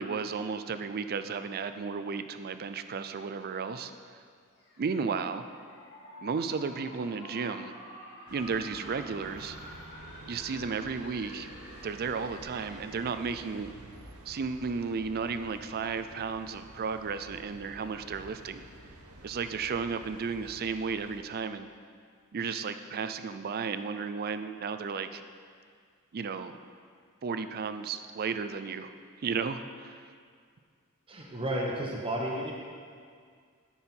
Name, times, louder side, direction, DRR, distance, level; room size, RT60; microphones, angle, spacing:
voice 1, 0.0-3.9 4.8-5.5 6.2-7.7 8.3-9.6 10.3-11.5 11.8-13.7 14.3-18.6 19.2-21.7 22.3-25.2 26.1-26.6 27.2-28.9 29.2-30.1, right 5 dB, 45° right, 10 dB, 0.4 m, -34 dB
sound 1, 4.5-13.4, left 1 dB, 50° left, 2.2 m, -49 dB
sound 2, 8.3-21.2, right 1 dB, 80° right, 1.0 m, -50 dB
voice 2, 31.1-32.5, right 1 dB, 25° right, -2 dB, 1.0 m, -32 dB
13.0 x 5.5 x 4.5 m, 2.1 s
head